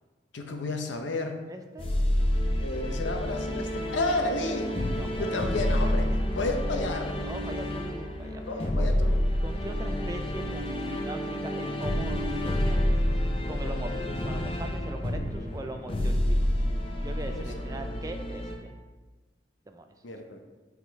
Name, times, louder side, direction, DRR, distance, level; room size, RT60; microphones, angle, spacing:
voice 1, 0.3-1.4 2.6-7.2 8.5-9.3 17.3-17.4 17.7-17.8 20.0-20.4, left 2 dB, 80° left, 5 dB, 0.7 m, -32 dB
voice 2, 1.5-2.0 4.5-5.7 6.1-6.5 7.2-9.0 9.4-13.1 13.5-16.6 17.0-18.8 19.7-19.9, right 1 dB, 20° right, 6 dB, 0.3 m, -41 dB
sound 1, 1.8-18.6, left 1 dB, 30° left, 0.5 m, -28 dB
7.6 x 3.7 x 3.4 m, 1.3 s
head